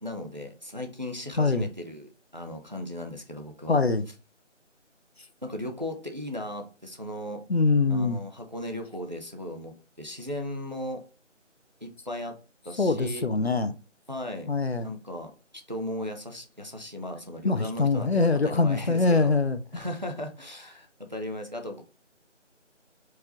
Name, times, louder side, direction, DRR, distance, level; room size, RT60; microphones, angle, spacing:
voice 1, 0.0-3.8 5.4-7.4 7.9-11.0 11.8-12.4 12.6-13.2 14.1-14.5 14.8-15.3 15.7-19.3 19.7-21.8, left 1 dB, 35° right, 0.6 m, -36 dB
voice 2, 3.7-4.0 7.5-8.2 12.8-13.8 14.5-14.9 17.4-19.8, left 3 dB, 55° left, 0.5 m, -24 dB
4.7 x 2.9 x 3.7 m
figure-of-eight pair, 175°, 37 cm